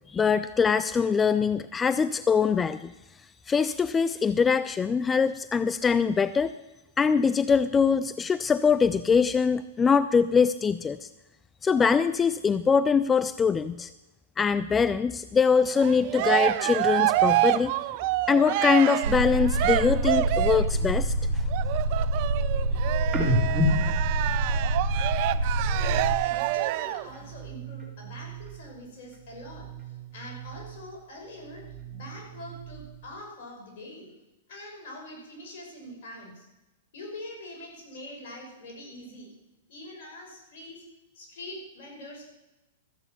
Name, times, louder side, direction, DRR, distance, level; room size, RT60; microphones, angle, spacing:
voice 1, 0.1-2.9 3.5-6.5 7.0-11.1 11.6-13.9 14.4-17.7 18.3-21.4, left 6 dB, 15° left, 14 dB, 0.4 m, -23 dB
Cheering, 15.7-20.8 21.5-27.1, right 16 dB, 50° right, 0.5 m, -27 dB
sound 1, 19.0-26.1, right 1 dB, 75° right, 1.8 m, -27 dB
sound 2, 23.1-26.7 27.0-28.8 29.1-31.0 31.3-33.2, equal, 15° right, 3.6 m, -33 dB
voice 2, 25.7-29.7 30.1-34.1 34.5-36.5 36.9-39.3 39.7-40.8 41.1-42.3, left 1 dB, 60° left, 0 dB, 5.6 m, -44 dB
13.5 x 8.0 x 6.9 m, 1.0 s
hypercardioid pair, 120°, 0 cm